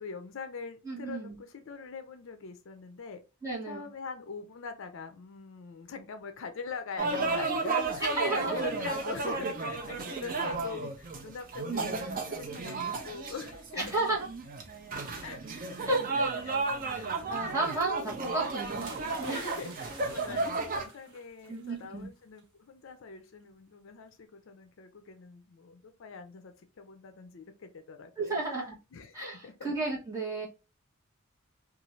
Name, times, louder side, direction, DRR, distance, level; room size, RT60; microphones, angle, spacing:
voice 1, 0.0-3.2 3.7-14.0 15.2-15.8 16.4-16.6 17.5-17.6 19.3-28.6 28.9-29.2 29.4-29.5, left 5 dB, 60° left, 7 dB, 0.4 m, -43 dB
voice 2, 0.8-1.4 3.4-3.9 8.2-8.7 11.6-12.2 13.8-14.3 15.9-16.3 16.9-18.9 19.2-19.5 21.5-22.1 28.2-28.8 29.1-30.5, right 2 dB, 15° right, -4 dB, 1.0 m, -33 dB
sound 1, 7.0-20.8, right 3 dB, 40° right, 0.5 m, -33 dB
sound 2, 18.8-21.8 22.2-22.4, right 3 dB, 55° right, 0.9 m, -49 dB
2.6 x 2.4 x 3.0 m, 0.30 s
head